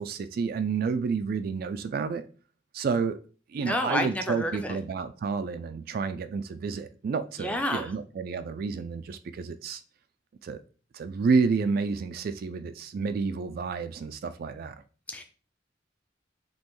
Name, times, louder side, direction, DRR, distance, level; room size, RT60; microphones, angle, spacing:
voice 1, 0.0-2.3 2.7-3.2 3.5-9.8 10.4-10.6 10.9-14.7, right 5 dB, 50° right, 0.3 m, -30 dB
voice 2, 3.6-4.8 7.4-7.8 15.1-15.2, left 1 dB, 5° left, 0.5 m, -29 dB
5.4 x 3.0 x 3.0 m
head